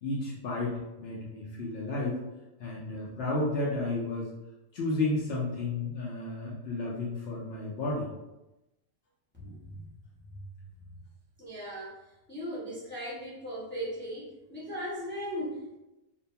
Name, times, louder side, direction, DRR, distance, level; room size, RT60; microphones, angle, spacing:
voice 1, 0.0-2.2 2.6-4.3 4.7-8.1, left 2 dB, 70° left, -5 dB, 0.6 m, -32 dB
voice 2, 9.3-9.8 11.4-12.0 12.3-14.2 14.5-15.8, equal, 10° left, -9 dB, 0.5 m, -37 dB
2.6 x 2.2 x 2.7 m, 0.97 s
omnidirectional pair, 1.6 m